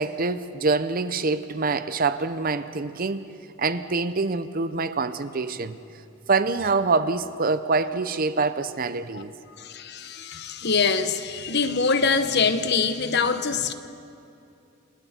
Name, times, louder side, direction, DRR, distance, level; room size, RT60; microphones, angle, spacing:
voice 1, 0.0-3.3 3.6-5.8 6.3-9.3, right 3 dB, 45° right, 0.7 m, -25 dB
voice 2, 9.6-13.7, left 5 dB, 55° left, 1.1 m, -24 dB
29.0 x 26.5 x 4.4 m
head